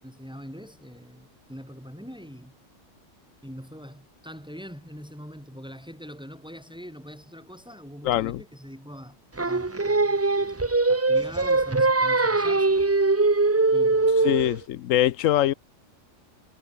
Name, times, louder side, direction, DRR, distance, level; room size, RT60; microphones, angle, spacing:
voice 1, 0.0-2.6 3.4-10.5 10.9-12.8 13.7-14.3, equal, 5° right, 8.0 m, -43 dB
voice 2, 8.0-8.4 14.2-15.5, left 13 dB, 80° left, 1.0 m, -23 dB
Singing, 9.4-14.6, right 3 dB, 25° right, 0.3 m, -22 dB
omnidirectional pair, 1.3 m